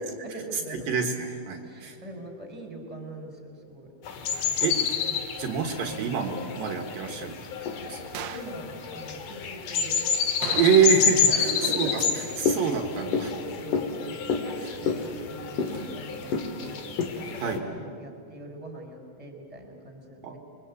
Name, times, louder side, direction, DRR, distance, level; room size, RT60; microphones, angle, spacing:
voice 1, 0.0-0.9 1.6-3.9 4.2-4.6 8.3-10.1 11.3-12.3 13.5-16.8 17.2-20.4, right 1 dB, 10° right, 3 dB, 4.5 m, -41 dB
voice 2, 0.9-2.0 4.4-7.4 7.7-8.0 10.5-11.5 11.8-13.3 15.7-15.9 17.4-17.6 20.2-20.3, right 6 dB, 70° right, 4 dB, 3.2 m, -26 dB
sound 1, 4.0-17.6, left 6 dB, 60° left, 3.0 m, -29 dB
sound 2, 8.2-8.6 10.4-11.3 11.5-11.6 16.7-16.8, right 10 dB, 90° right, 3.0 m, -37 dB
28.5 x 23.0 x 8.4 m, 2.3 s
omnidirectional pair, 4.4 m